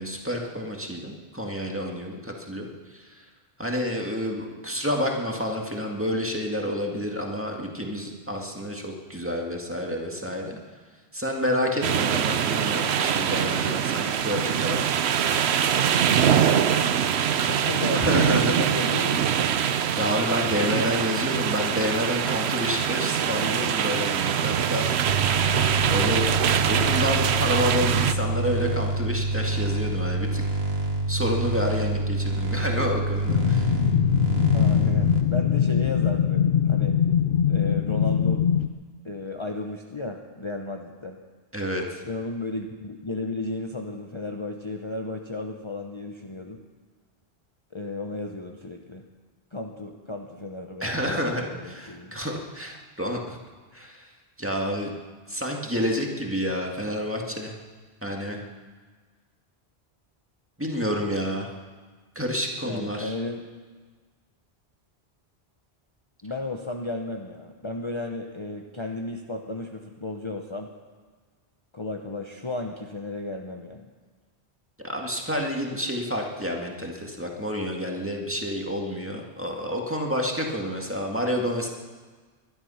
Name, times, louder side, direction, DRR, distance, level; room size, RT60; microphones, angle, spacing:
voice 1, 0.0-3.2 3.6-10.6 11.1-14.8 17.9-18.5 20.0-24.9 25.9-26.2 26.7-30.4 31.1-33.7 41.5-42.0 50.8-53.4 53.7-54.1 54.4-54.9 55.3-57.5 58.0-58.4 60.6-61.5 62.2-63.1 74.8-81.7, equal, 10° right, 0 dB, 2.0 m, -29 dB
sound 1, 11.8-28.1, right 8 dB, 90° right, 1.0 m, -23 dB
voice 2, 17.5-19.5 34.5-37.0 37.5-38.5 39.0-41.2 42.0-46.6 47.7-49.0 49.5-52.1 62.6-63.5 66.2-70.7 71.7-73.9, left 2 dB, 30° left, 2 dB, 1.0 m, -34 dB
sound 2, 25.1-35.2, right 2 dB, 75° right, 1.9 m, -27 dB
sound 3, 33.3-38.7, left 9 dB, 65° left, 0.8 m, -22 dB
21.5 x 11.5 x 5.7 m, 1.4 s
omnidirectional pair, 1.1 m